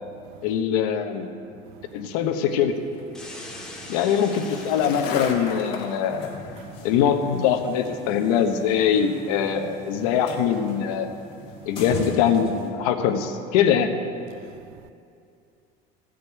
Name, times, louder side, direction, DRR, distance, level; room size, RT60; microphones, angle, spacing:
voice 1, 0.4-1.3 1.9-2.7 3.9-6.3 6.8-11.1 11.7-13.9, left 8 dB, 85° left, 1.0 m, -22 dB
Skateboard, 1.9-12.4, left 5 dB, 55° left, 1.3 m, -39 dB
sound 1, 3.1-5.6, left 1 dB, 5° left, 0.9 m, -41 dB
voice 2, 3.2-3.9 6.6-6.7 14.4-14.9, right 13 dB, 75° right, 0.4 m, -49 dB
sound 2, 6.1-12.7, left 2 dB, 30° left, 2.2 m, -40 dB
14.5 x 5.2 x 8.1 m
cardioid pair, 175°, 18 cm